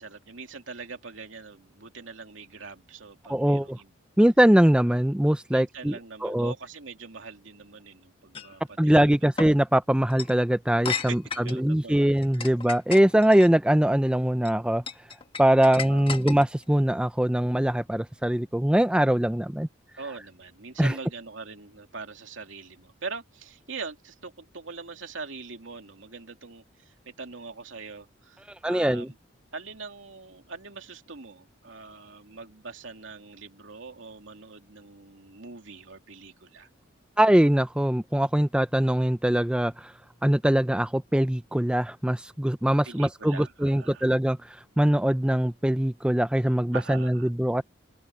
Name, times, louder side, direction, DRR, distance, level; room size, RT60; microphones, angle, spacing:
voice 1, 0.0-3.9 5.5-9.1 10.9-12.0 12.3-12.5 15.6-16.1 20.0-29.1 29.5-36.7 42.8-44.1 46.7-47.3, right 4 dB, 75° right, 2.8 m, -42 dB
voice 2, 3.3-3.8 4.2-5.9 6.2-6.5 8.8-11.2 11.5-14.8 15.4-19.7 20.8-20.9 28.6-29.1 37.2-39.9 40.2-47.6, right 1 dB, 5° right, 0.5 m, -22 dB
sound 1, 8.3-8.5 9.4-9.5 10.1-10.3 10.8-11.6 12.2-13.5 14.2-14.5 14.9-16.6, left 5 dB, 25° left, 1.7 m, -34 dB
open air
head